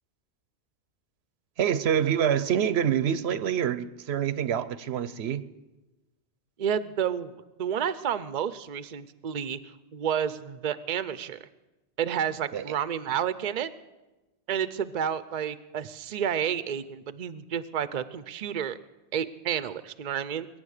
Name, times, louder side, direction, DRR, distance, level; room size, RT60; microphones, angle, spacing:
voice 1, 1.6-5.4 12.5-12.8, right 9 dB, 75° right, 0.9 m, -26 dB
voice 2, 6.6-7.3 7.6-9.6 9.9-11.4 12.0-13.7 14.5-18.8 19.1-20.5, right 8 dB, 50° right, 0.7 m, -30 dB
22.5 x 9.6 x 6.5 m
omnidirectional pair, 1.1 m